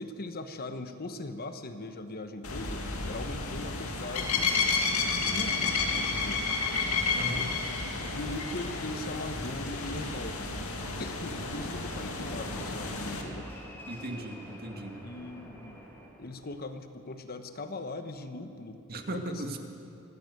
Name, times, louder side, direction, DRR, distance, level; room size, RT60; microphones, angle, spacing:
voice 1, 0.0-4.5 5.0-6.5 7.3-7.6 8.1-10.4 11.0-13.5 15.0-15.8 16.2-18.8 19.1-19.6, left 2 dB, 45° left, 8 dB, 1.1 m, -40 dB
sound 1, 2.4-13.2, left 4 dB, 85° left, 2.3 m, -31 dB
voice 2, 7.1-7.5 13.9-15.0 18.9-19.6, right 1 dB, 45° right, 4 dB, 1.9 m, -37 dB
Fixed-wing aircraft airplane, 10.9-16.6, equal, 10° left, 4.8 m, -47 dB
24.5 x 15.0 x 7.9 m, 2.6 s
head